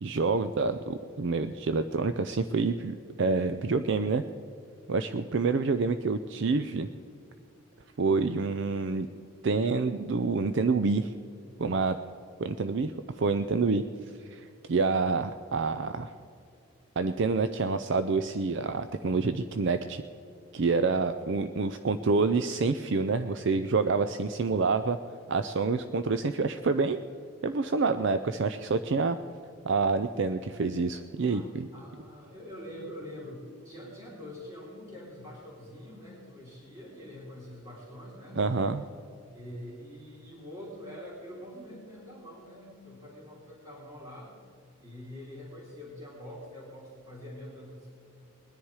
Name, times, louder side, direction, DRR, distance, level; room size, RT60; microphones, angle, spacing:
voice 1, 0.0-4.2 4.9-6.9 8.0-9.1 9.4-11.1 11.6-12.0 12.4-13.8 14.3-16.1 17.0-20.0 20.5-25.0 25.3-27.0 27.4-29.2 29.6-31.7 38.4-38.8, right 4 dB, 55° right, 10 dB, 0.4 m, -27 dB
voice 2, 31.2-38.4 39.3-44.3 44.8-47.9, left 1 dB, 25° right, -6 dB, 3.2 m, -45 dB
21.0 x 10.5 x 4.8 m, 2.4 s
head